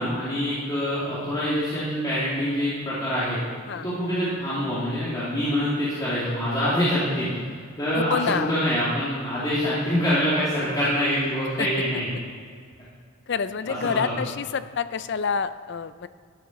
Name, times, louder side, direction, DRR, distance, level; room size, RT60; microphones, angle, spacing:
voice 1, 0.0-3.4 3.7-7.3 7.8-12.2 13.7-14.2, equal, 20° left, -10 dB, 2.4 m, -25 dB
voice 2, 7.9-8.5 11.6-11.7 13.3-16.1, left 6 dB, 50° left, 13 dB, 0.4 m, -27 dB
13.5 x 7.1 x 6.0 m, 2.1 s
head